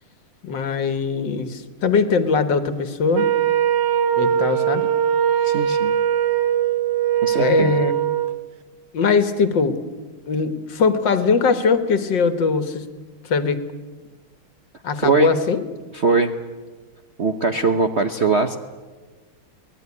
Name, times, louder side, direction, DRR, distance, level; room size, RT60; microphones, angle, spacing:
voice 1, 0.4-3.3 4.2-4.9 7.3-7.9 8.9-9.8 10.3-12.9 13.2-13.6 14.8-15.6, left 5 dB, 60° left, 11 dB, 1.9 m, -21 dB
Wind instrument woodwind instrument, 3.1-8.4, right 9 dB, 70° right, 0.6 m, -20 dB
voice 2, 5.4-6.0 7.2-7.7 14.9-15.3 15.9-16.3 17.2-18.6, right 4 dB, 45° right, 7 dB, 0.9 m, -21 dB
24.0 x 19.0 x 9.6 m, 1.3 s
omnidirectional pair, 2.3 m